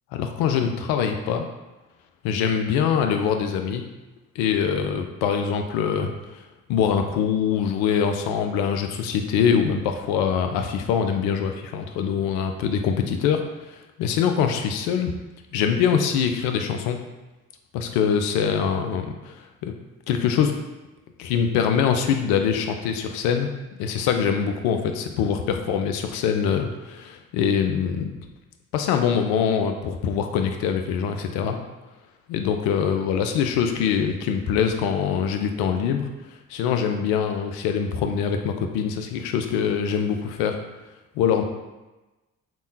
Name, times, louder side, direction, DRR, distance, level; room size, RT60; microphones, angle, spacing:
voice 1, 0.1-1.5 2.2-3.8 4.4-6.4 6.7-15.1 15.5-17.0 17.7-19.7 20.1-20.5 21.2-23.5 23.8-28.2 28.7-31.6 32.3-36.1 36.5-40.6 41.2-41.4, left 7 dB, 65° left, 5 dB, 0.5 m, -24 dB
3.5 x 2.2 x 2.7 m, 1.1 s
hypercardioid pair, 45°, 40 cm